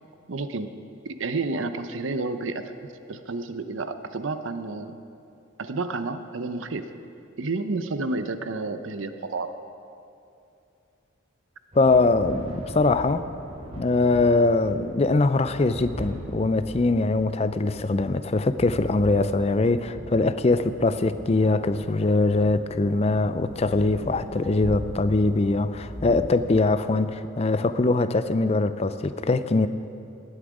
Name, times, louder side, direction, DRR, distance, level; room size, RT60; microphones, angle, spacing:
voice 1, 0.3-0.7 1.0-2.7 3.1-5.0 5.6-6.9 7.4-9.5, right 3 dB, 75° right, 10 dB, 0.7 m, -30 dB
sound 1, 11.7-26.4, equal, 35° right, 2.9 m, -40 dB
voice 2, 11.8-13.3 13.8-29.7, left 3 dB, 30° left, 12 dB, 0.4 m, -22 dB
18.0 x 8.8 x 5.0 m, 2.6 s
head